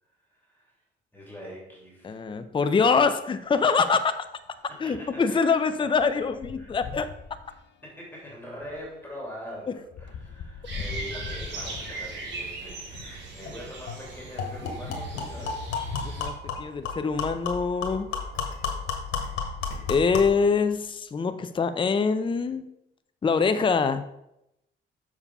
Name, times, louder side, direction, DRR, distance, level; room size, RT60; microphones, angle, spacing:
voice 1, 0.0-0.8 1.1-2.2 4.7-5.9 6.6-6.7 7.8-15.8, equal, 10° left, -3 dB, 2.8 m, -43 dB
voice 2, 2.0-4.1 4.8-7.1 16.0-18.1 19.9-22.7 23.2-24.0, left 5 dB, 25° left, 10 dB, 0.5 m, -24 dB
sound 1, 3.4-3.5 3.8-13.3 14.0-15.4 16.0-16.1 16.4-16.5 18.2-18.3 18.9-19.2 19.6-20.9, left 5 dB, 65° left, 0.7 m, -44 dB
sound 2, 10.6-16.3, right 3 dB, 65° right, 2.6 m, -39 dB
sound 3, 13.5-13.6 13.9-14.0 14.4-20.4, left 5 dB, 90° left, 1.6 m, -32 dB
6.9 x 4.8 x 5.4 m, 0.84 s
cardioid pair, 90°, 20 cm